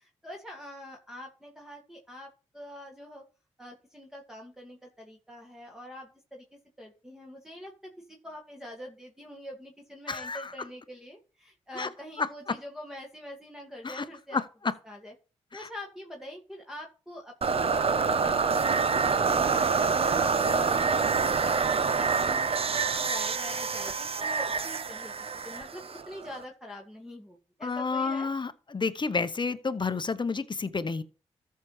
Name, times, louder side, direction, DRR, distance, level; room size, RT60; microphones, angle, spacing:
voice 1, 0.0-3.2 3.6-6.5 6.8-14.4 14.8-15.1 15.5-28.3, left 1 dB, 5° right, 2.0 m, -45 dB
voice 2, 10.1-10.5 11.8-11.9 12.2-12.3 13.8-14.0 14.3-14.7 15.5-15.6 27.6-31.0, left 4 dB, 40° left, 0.9 m, -30 dB
sound 1, 17.4-26.4, right 5 dB, 50° right, 0.8 m, -26 dB
14.0 x 5.7 x 3.2 m
supercardioid pair, 40°, 13 cm